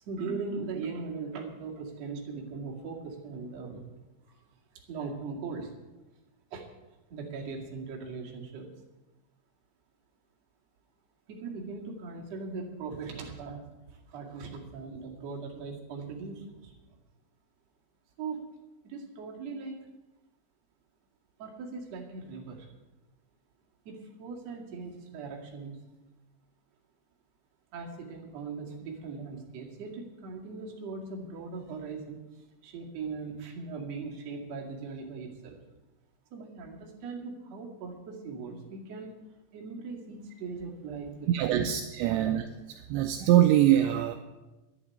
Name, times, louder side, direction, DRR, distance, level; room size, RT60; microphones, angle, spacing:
voice 1, 0.1-3.8 4.3-4.4 4.9-5.7 6.5-6.7 7.1-8.7 11.3-16.7 18.2-18.5 18.8-19.9 21.4-22.7 23.8-25.8 27.7-35.6 36.3-39.1 39.5-41.6 42.1-42.3, right 4 dB, 45° right, -1 dB, 2.4 m, -39 dB
voice 2, 41.3-42.4 42.9-44.2, right 12 dB, 85° right, 7 dB, 2.6 m, -23 dB
11.0 x 9.5 x 9.8 m, 1.1 s
omnidirectional pair, 6.0 m